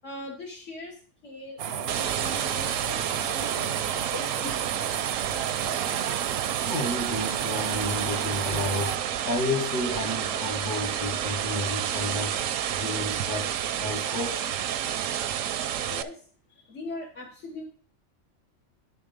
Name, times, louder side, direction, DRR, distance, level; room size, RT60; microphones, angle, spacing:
voice 1, 0.0-4.5 15.7-16.2 16.5-17.6, left 2 dB, 65° left, -2 dB, 1.7 m, -41 dB
sound 1, 1.6-9.0, right 9 dB, 65° right, 0.7 m, -33 dB
sound 2, 1.9-16.0, right 10 dB, 85° right, 1.0 m, -30 dB
voice 2, 6.6-12.5 12.8-13.5 13.8-14.4, left 2 dB, 40° left, 1 dB, 1.1 m, -31 dB
11.0 x 3.9 x 5.1 m, 0.41 s
omnidirectional pair, 1.3 m